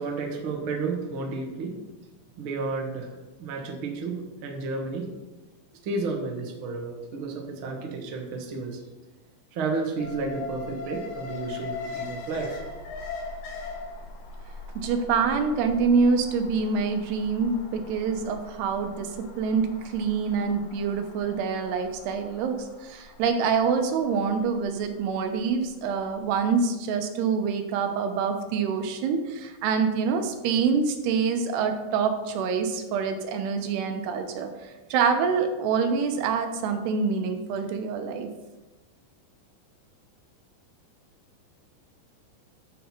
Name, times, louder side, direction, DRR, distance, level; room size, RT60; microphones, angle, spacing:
voice 1, 0.0-1.8 2.4-3.1 3.4-5.1 5.8-8.8 9.5-12.7, right 3 dB, 50° right, 1 dB, 1.6 m, -32 dB
Alarm, 10.0-26.1 26.4-26.5, left 4 dB, 60° left, 1.7 m, -41 dB
voice 2, 14.8-19.1 19.4-38.3, right 5 dB, 85° right, 6 dB, 3.1 m, -26 dB
14.0 x 6.6 x 4.4 m, 1.1 s
omnidirectional pair, 4.6 m